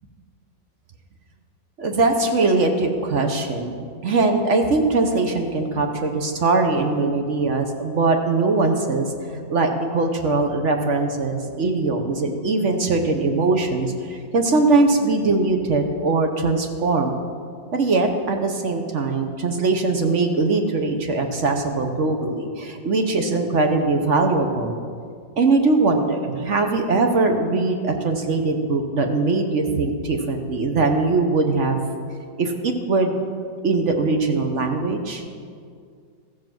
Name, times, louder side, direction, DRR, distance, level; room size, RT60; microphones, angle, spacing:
voice 1, 1.8-3.8 4.0-9.1 9.5-17.1 17.7-24.8 25.4-31.8 32.4-33.2 33.6-35.2, right 3 dB, 50° right, 4 dB, 1.0 m, -21 dB
14.0 x 7.2 x 6.1 m, 2.2 s
omnidirectional pair, 2.0 m